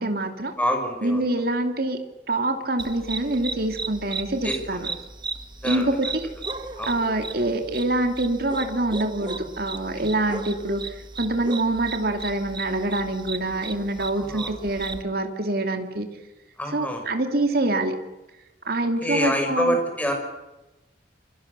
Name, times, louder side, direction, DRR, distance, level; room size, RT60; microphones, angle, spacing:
voice 1, 0.0-0.5 1.0-2.0 2.3-4.9 5.6-6.1 6.9-16.1 16.7-17.9 18.7-19.8, right 2 dB, 55° right, 5 dB, 2.8 m, -25 dB
voice 2, 0.6-1.2 4.4-4.8 5.6-5.9 6.8-7.0 10.0-10.1 14.0-14.5 16.6-17.1 19.0-20.1, equal, 10° left, 3 dB, 5.9 m, -27 dB
sound 1, 2.8-15.0, right 3 dB, 25° right, 1.3 m, -36 dB
28.0 x 24.5 x 6.9 m, 1.0 s
head